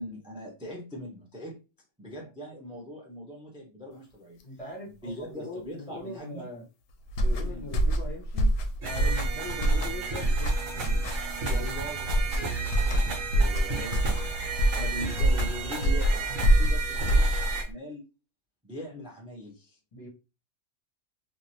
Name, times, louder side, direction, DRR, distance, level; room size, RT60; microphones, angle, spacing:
voice 1, 0.0-1.5 2.0-4.4 4.8-6.5 7.4-7.7 11.5-18.1 18.6-19.8, equal, 5° right, 0 dB, 0.4 m, -41 dB
voice 2, 4.4-6.7 7.2-8.5 8.8-11.1 11.5-11.6 19.9-20.1, left 1 dB, 30° left, -2 dB, 0.8 m, -41 dB
sound 1, 7.1-17.7, right 1 dB, 85° left, 1.0 m, -25 dB
sound 2, 8.8-17.6, right 4 dB, 90° right, 1.2 m, -33 dB
2.9 x 2.4 x 2.8 m, 0.30 s
omnidirectional pair, 1.3 m